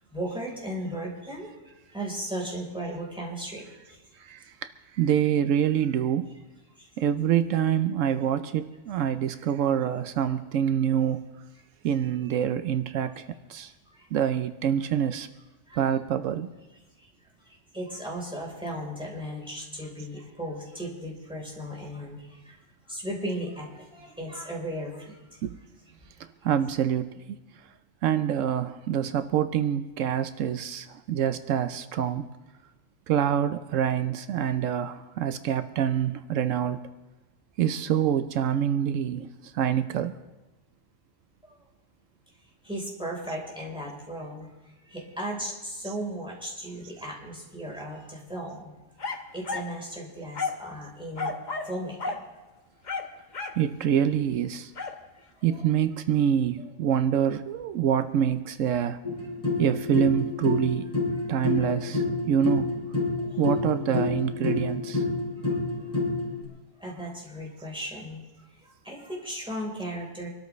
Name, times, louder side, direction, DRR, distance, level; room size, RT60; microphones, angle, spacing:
voice 1, 0.1-4.2 6.8-6.9 12.3-12.4 13.9-14.1 15.7-15.8 17.0-17.1 17.4-22.6 22.8-25.4 41.4-41.6 42.6-44.5 44.9-48.7 49.0-51.3 51.6-52.2 55.1-55.6 56.6-56.7 63.2-63.4 65.4-65.9 66.8-68.2 68.6-70.3, right 1 dB, 5° right, -3 dB, 3.9 m, -36 dB
voice 2, 4.2-6.3 7.0-11.3 11.8-13.7 14.1-15.3 15.8-16.5 25.4-25.6 26.4-27.4 28.0-32.3 33.1-36.9 37.6-40.2 53.5-54.7 55.4-59.0 59.6-60.9 61.3-62.7 63.4-65.0, right 9 dB, 85° right, 11 dB, 1.0 m, -26 dB
sound 1, 49.0-49.7 50.3-50.7 51.2-51.7 52.0-52.2 52.8-53.6 54.8-55.0, left 4 dB, 40° left, 1.1 m, -32 dB
sound 2, 59.0-66.4, left 3 dB, 15° left, 5.8 m, -28 dB
25.5 x 13.0 x 3.2 m, 1.1 s
omnidirectional pair, 1.3 m